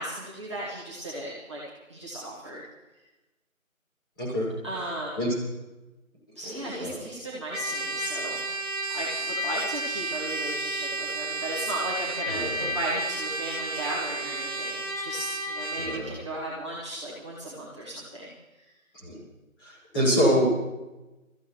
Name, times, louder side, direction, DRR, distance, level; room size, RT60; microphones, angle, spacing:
voice 1, 0.0-1.6 1.9-2.6 4.6-5.2 6.4-8.5 8.9-18.7, right 1 dB, 20° right, -8 dB, 1.7 m, -35 dB
voice 2, 4.2-4.5 5.2-5.3 6.4-7.0 12.3-12.7 15.8-16.1 18.9-19.2 19.6-20.5, equal, 15° left, -8 dB, 5.1 m, -26 dB
Trumpet, 7.5-16.0, right 2 dB, 70° right, 1.7 m, -32 dB
24.5 x 14.5 x 3.1 m, 1.1 s
figure-of-eight pair, 170°, 42 cm